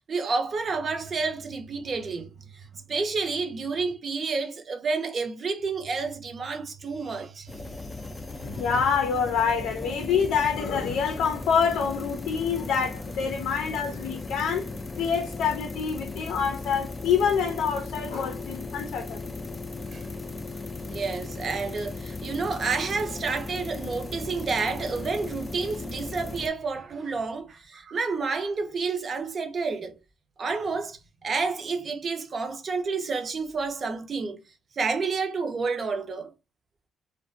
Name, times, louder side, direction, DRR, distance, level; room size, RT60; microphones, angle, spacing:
voice 1, 0.1-7.9 8.5-8.6 19.9-20.1 20.9-30.0 30.4-34.4 34.7-36.3, right 4 dB, 45° right, 0.6 m, -30 dB
sound 1, 7.5-26.5, left 3 dB, 20° left, 0.4 m, -37 dB
voice 2, 8.4-14.7 15.0-19.2, left 6 dB, 85° left, 0.5 m, -26 dB
2.4 x 2.1 x 2.5 m
cardioid pair, 90°, 0 cm